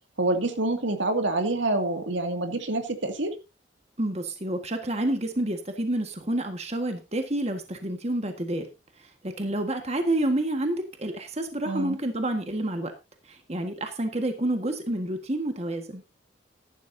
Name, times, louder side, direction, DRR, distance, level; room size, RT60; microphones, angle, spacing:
voice 1, 0.2-3.3 11.6-12.0, right 2 dB, 80° right, 6 dB, 2.4 m, -27 dB
voice 2, 4.0-8.7 9.0-12.9 13.3-16.0, right 1 dB, 35° right, 6 dB, 1.6 m, -29 dB
14.0 x 12.0 x 2.8 m, 0.27 s
head